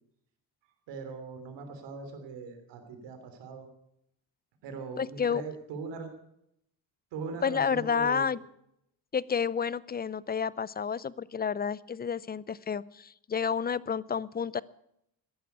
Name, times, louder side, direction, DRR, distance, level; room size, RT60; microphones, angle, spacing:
voice 1, 0.6-3.7 4.6-6.1 7.1-8.2, right 4 dB, 85° right, 7 dB, 3.2 m, -40 dB
voice 2, 5.0-5.4 7.4-8.4 9.1-14.6, left 6 dB, 25° left, 21 dB, 0.5 m, -30 dB
14.5 x 11.0 x 8.1 m, 0.76 s
cardioid pair, 85°, 42 cm